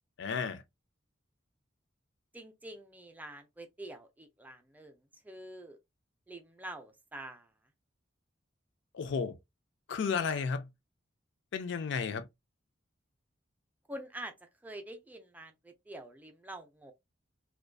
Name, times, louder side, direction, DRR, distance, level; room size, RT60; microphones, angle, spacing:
voice 1, 0.2-0.6 8.9-9.4 9.9-10.7 11.5-12.2, left 5 dB, 65° left, 0.4 m, -33 dB
voice 2, 2.3-5.0 5.2-5.8 6.3-7.5 13.9-16.9, right 1 dB, 10° right, 0.4 m, -46 dB
2.5 x 2.2 x 2.2 m
head